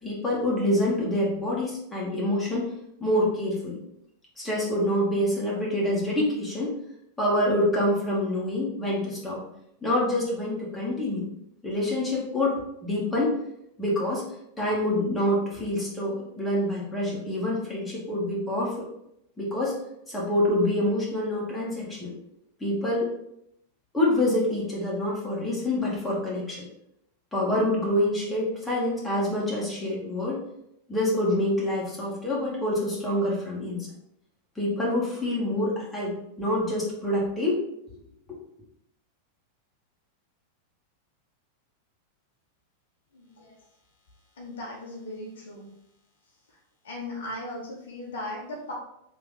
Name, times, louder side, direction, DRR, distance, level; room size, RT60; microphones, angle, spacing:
voice 1, 0.0-2.7 3.0-3.8 4.4-6.7 7.2-9.4 9.8-11.2 11.6-13.3 13.8-14.2 14.6-18.8 19.4-19.7 20.1-22.1 22.6-23.1 23.9-26.7 27.3-30.4 30.9-33.9 34.5-37.6 38.3-38.4, left 1 dB, 5° left, -6 dB, 1.5 m, -26 dB
voice 2, 43.1-43.6 44.3-45.7 46.5-46.6 46.8-48.7, left 1 dB, 60° left, -2 dB, 1.1 m, -38 dB
3.4 x 3.0 x 3.6 m, 0.77 s
figure-of-eight pair, 90°, 0 cm